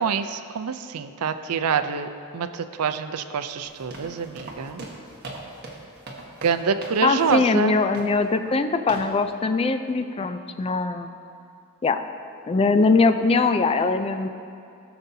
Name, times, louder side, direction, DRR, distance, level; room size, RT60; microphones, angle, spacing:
voice 1, 0.0-4.8 6.4-7.8, right 6 dB, 85° right, 9 dB, 0.5 m, -26 dB
sound 1, 3.6-7.0 7.3-7.5 7.9-8.2 8.9-9.1, right 2 dB, 50° right, 1.4 m, -39 dB
voice 2, 7.0-11.2 11.8-12.0 12.5-14.3, left 3 dB, 25° left, 9 dB, 0.3 m, -21 dB
17.5 x 6.8 x 2.7 m, 2.6 s
head